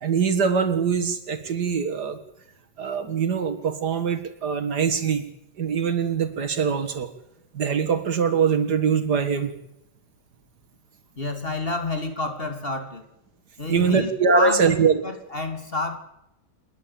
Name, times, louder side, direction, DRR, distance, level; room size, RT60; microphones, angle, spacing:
voice 1, 0.0-2.2 2.8-5.2 5.6-7.1 7.5-9.5 13.7-15.0, right 6 dB, 65° right, 9 dB, 2.2 m, -23 dB
voice 2, 11.2-13.0 13.6-16.0, left 2 dB, 30° left, 6 dB, 3.1 m, -29 dB
28.5 x 11.0 x 8.8 m, 0.85 s
omnidirectional pair, 1.9 m